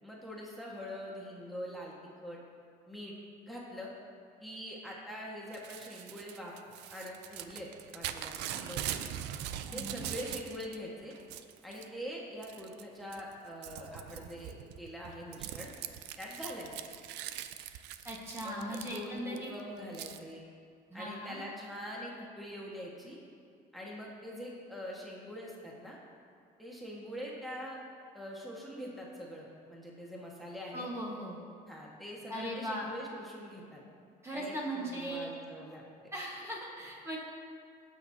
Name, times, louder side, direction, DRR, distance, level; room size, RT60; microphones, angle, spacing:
voice 1, 0.0-1.9 2.2-2.4 2.9-3.1 3.4-3.9 4.4-6.5 6.9-9.1 9.7-11.1 11.6-15.7 16.2-16.7 18.4-20.4 20.9-23.2 23.7-26.0 26.6-27.8 28.1-30.9 31.7-33.8 34.3-36.1, equal, ahead, -4 dB, 1.6 m, -44 dB
Crumpling crinkling / Tearing, 5.5-10.8 11.1-11.9 12.4-12.8 13.1-19.4 19.9-20.2, right 11 dB, 90° right, 0.4 m, -42 dB
voice 2, 9.7-10.0 18.0-19.5 20.9-21.4 30.7-31.4 32.3-32.9 34.2-35.3 36.1-37.2, equal, 15° right, -4 dB, 1.5 m, -38 dB
18.0 x 6.2 x 2.8 m, 2.2 s
cardioid pair, 110°, 17 cm